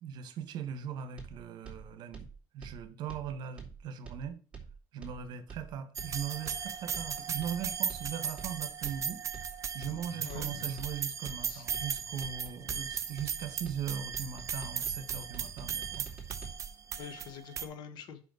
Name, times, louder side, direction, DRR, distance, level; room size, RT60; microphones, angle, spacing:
voice 1, 0.0-2.3 2.5-4.4 4.9-9.2 9.7-16.1, right 8 dB, 60° right, 1.3 m, -39 dB
sound 1, 1.2-16.5, right 6 dB, 15° right, 2.7 m, -47 dB
sound 2, 6.0-17.7, right 7 dB, 40° right, 0.7 m, -37 dB
voice 2, 10.1-10.7 11.4-11.7 17.0-18.2, left 7 dB, 65° left, 1.2 m, -45 dB
5.6 x 5.0 x 6.2 m
supercardioid pair, 100°, 8 cm